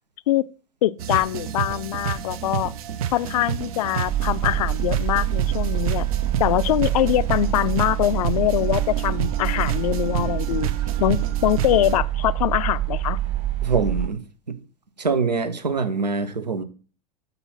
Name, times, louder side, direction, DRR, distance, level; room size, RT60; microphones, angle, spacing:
voice 1, 0.8-2.7 3.1-6.1 6.4-10.7 11.0-13.2, left 14 dB, 65° left, 0.4 m, -23 dB
sound 1, 1.0-12.0, right 9 dB, 60° right, 0.7 m, -30 dB
sound 2, 4.1-14.1, right 13 dB, 30° right, 1.7 m, -26 dB
voice 2, 13.6-14.2 14.5-14.6 15.0-16.6, right 4 dB, 85° right, 0.9 m, -24 dB
6.8 x 4.1 x 5.5 m
figure-of-eight pair, 85°, 21 cm